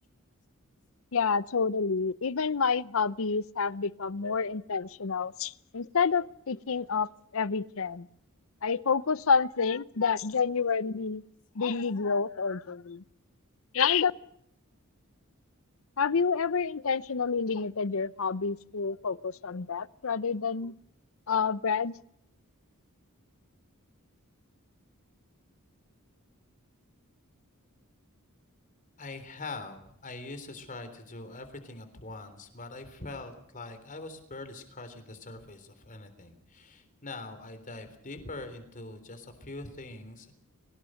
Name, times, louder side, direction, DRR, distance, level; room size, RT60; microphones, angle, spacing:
voice 1, 1.1-8.1 8.6-11.2 11.6-13.0 13.7-14.1 16.0-20.7 21.3-21.9, left 5 dB, 65° left, 0.7 m, -28 dB
voice 2, 29.0-40.3, left 2 dB, 40° left, 3.6 m, -43 dB
22.5 x 19.0 x 6.5 m
head